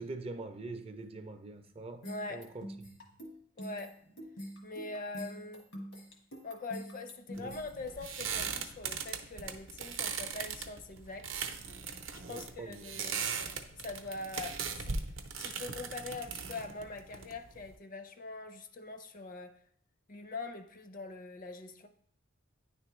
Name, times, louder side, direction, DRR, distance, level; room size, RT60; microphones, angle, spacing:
voice 1, 0.0-2.7 7.4-7.5 12.2-12.8, right 3 dB, 30° right, 0.4 m, -43 dB
sound 1, 2.0-8.3, equal, 85° left, 1.4 m, -45 dB
voice 2, 2.0-2.5 3.6-4.0 4.6-5.7 6.4-11.3 12.1-13.3 13.7-15.0 15.4-19.6 20.1-21.9, left 3 dB, 45° left, 0.5 m, -43 dB
sound 2, 7.3-17.7, right 6 dB, 75° right, 0.6 m, -39 dB
9.6 x 3.4 x 3.0 m
head